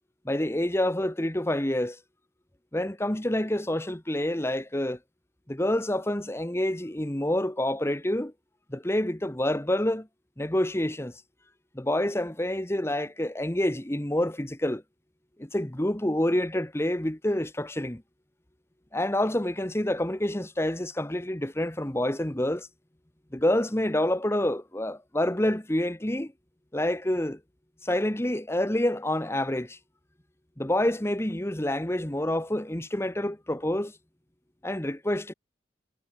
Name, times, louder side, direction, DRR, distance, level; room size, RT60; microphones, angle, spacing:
voice 1, 0.2-2.0 2.7-5.0 5.5-8.3 8.7-10.1 10.4-11.2 11.7-14.8 15.4-18.0 18.9-22.7 23.3-26.3 26.7-27.4 27.8-29.8 30.6-33.9 34.6-35.3, left 1 dB, 15° left, 1.3 m, -27 dB
head